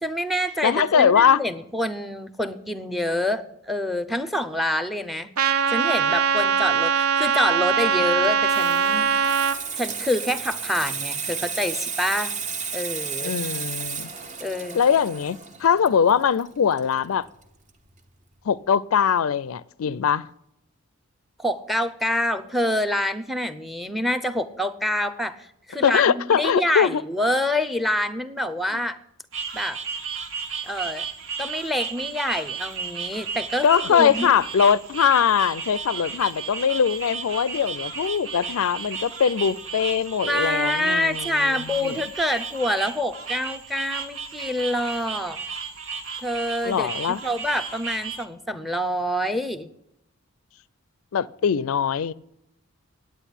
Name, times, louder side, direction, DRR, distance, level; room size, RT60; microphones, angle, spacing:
voice 1, 0.0-5.3 5.7-9.1 9.7-12.3 12.7-13.4 14.4-14.9 21.4-29.0 29.5-29.8 30.6-31.1 31.4-34.3 40.3-45.4 46.2-46.9 47.2-49.7, left 1 dB, ahead, 0.6 m, -26 dB
voice 2, 0.6-1.4 13.2-14.1 14.7-17.3 18.5-20.3 25.8-27.0 33.6-42.0 46.6-47.2 51.1-52.1, left 7 dB, 70° left, 0.4 m, -21 dB
Trumpet, 5.4-9.6, right 7 dB, 85° right, 0.9 m, -21 dB
Water tap faucet / Sink (filling or washing), 8.1-17.4 17.7-18.0, right 6 dB, 35° right, 0.9 m, -33 dB
sound 1, 29.3-48.2, right 5 dB, 65° right, 1.4 m, -34 dB
9.9 x 8.6 x 9.9 m
head